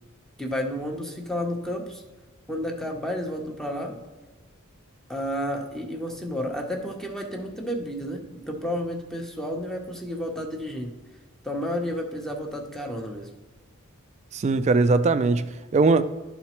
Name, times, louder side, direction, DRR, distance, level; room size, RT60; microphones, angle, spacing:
voice 1, 0.4-2.0 2.5-4.0 5.1-10.9 11.4-13.3, equal, ahead, 0.7 m, -31 dB
voice 2, 14.3-16.0, right 3 dB, 35° right, 0.3 m, -20 dB
12.0 x 4.0 x 2.9 m
head